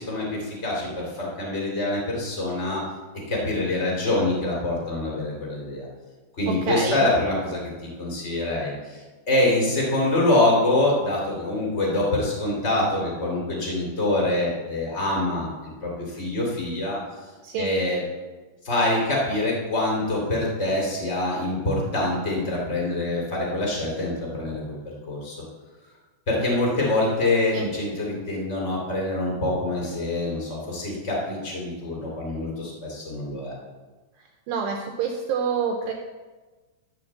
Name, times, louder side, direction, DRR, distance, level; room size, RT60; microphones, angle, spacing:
voice 1, 0.0-2.8 3.3-5.8 6.4-17.0 17.6-18.0 18.6-24.8 25.1-25.4 26.3-33.5, left 2 dB, 55° left, -3 dB, 0.7 m, -25 dB
voice 2, 6.5-7.0 17.4-17.7 27.5-27.7 34.5-35.9, right 6 dB, 90° right, 2 dB, 2.4 m, -27 dB
13.5 x 4.5 x 7.3 m, 1.3 s
omnidirectional pair, 5.7 m